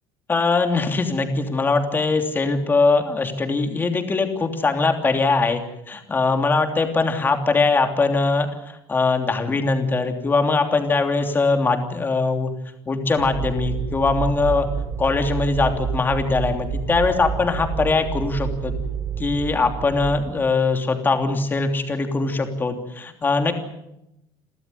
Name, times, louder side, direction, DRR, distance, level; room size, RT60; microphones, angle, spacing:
voice 1, 0.3-5.6 5.9-12.5 12.9-14.7 15.0-18.7 19.2-23.5, left 3 dB, 20° left, 5 dB, 3.1 m, -21 dB
sound 1, 13.2-20.2, right 7 dB, 80° right, 7.6 m, -29 dB
29.0 x 14.0 x 9.8 m, 0.87 s
cardioid pair, 150°, 10 cm